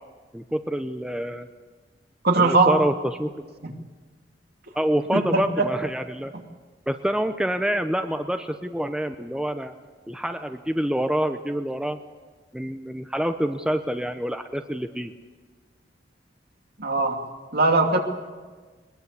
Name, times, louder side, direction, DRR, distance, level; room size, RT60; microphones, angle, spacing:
voice 1, 0.3-1.5 2.4-3.3 4.7-6.3 6.9-9.7 10.1-12.0 12.5-15.1, equal, 5° right, 7 dB, 0.8 m, -27 dB
voice 2, 2.2-2.8 3.6-3.7 5.1-5.7 16.8-17.2 17.5-18.0, right 3 dB, 60° right, 3 dB, 2.8 m, -20 dB
21.5 x 21.5 x 8.4 m, 1.4 s
head